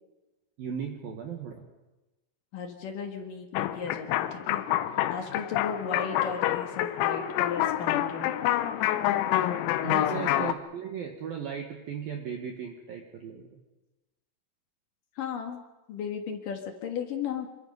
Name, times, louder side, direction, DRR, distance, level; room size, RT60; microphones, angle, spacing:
voice 1, 0.6-1.6 9.7-13.5, right 7 dB, 60° right, 3 dB, 2.6 m, -37 dB
voice 2, 2.5-4.6 5.1-8.3 9.9-10.1 15.2-15.6 15.9-17.5, left 6 dB, 60° left, 4 dB, 2.4 m, -35 dB
sound 1, 3.6-10.5, left 13 dB, 90° left, 3.7 m, -27 dB
28.0 x 24.0 x 5.4 m, 1.1 s
omnidirectional pair, 5.9 m